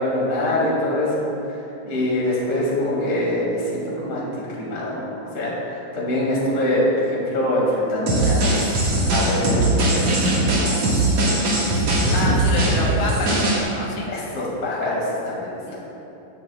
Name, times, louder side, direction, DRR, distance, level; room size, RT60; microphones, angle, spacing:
voice 1, 0.0-4.3 4.5-10.9 11.2-12.2 12.9-13.0 14.1-15.8, left 1 dB, 25° left, -5 dB, 2.0 m, -25 dB
sound 1, 8.1-13.6, right 1 dB, 50° right, 2.6 m, -20 dB
voice 2, 12.1-14.1 15.6-15.8, left 2 dB, 90° left, -2 dB, 3.0 m, -27 dB
17.5 x 7.3 x 2.4 m, 2.9 s
omnidirectional pair, 4.1 m